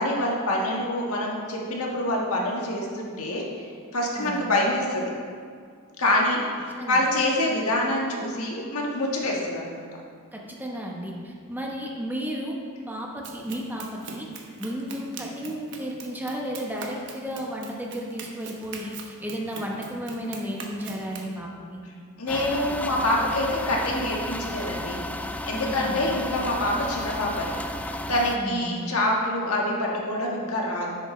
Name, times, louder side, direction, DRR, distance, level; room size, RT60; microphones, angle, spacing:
voice 1, 0.0-3.4 3.9-5.1 6.0-9.8 22.2-30.9, left 1 dB, 70° left, -2 dB, 1.6 m, -26 dB
voice 2, 10.3-12.6 12.9-14.3 14.6-21.8 25.6-26.0 28.3-28.9, equal, 10° right, -2 dB, 1.0 m, -33 dB
Run, 13.2-21.3, right 5 dB, 55° right, 1.0 m, -42 dB
sound 1, 22.3-28.4, left 1 dB, 5° left, 0.3 m, -33 dB
10.5 x 8.2 x 3.2 m, 2.1 s
head